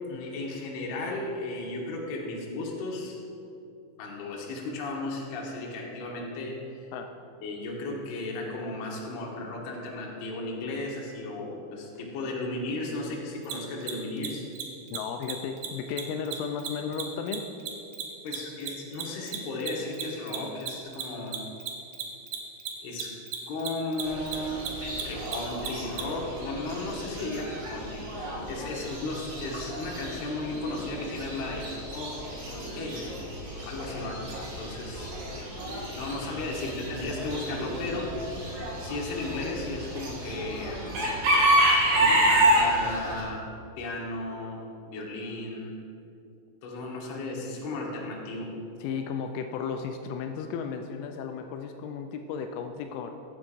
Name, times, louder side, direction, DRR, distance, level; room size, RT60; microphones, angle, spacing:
voice 1, 0.1-3.2 4.0-6.9 7.4-14.4 18.2-21.5 22.8-23.1 23.5-28.1 28.5-32.3 32.8-33.0 33.6-34.3 34.5-35.1 35.7-38.1 38.8-41.0 41.9-43.4 43.8-45.8 46.6-48.5, left 2 dB, 65° left, -2 dB, 2.9 m, -35 dB
Mechanisms, 13.4-13.5 13.8-13.9 14.2-14.3 14.5-14.6 14.9-15.0 15.2-15.3 15.6-15.7 16.0-18.7 18.9-26.0, right 12 dB, 80° right, 2.2 m, -34 dB
voice 2, 14.9-17.5 48.8-53.1, left 6 dB, 85° left, 5 dB, 3.0 m, -34 dB
Chicken rooster / Bird, 24.0-43.2, right 1 dB, 60° right, 3.2 m, -29 dB
15.0 x 8.4 x 2.5 m, 2.6 s
omnidirectional pair, 5.6 m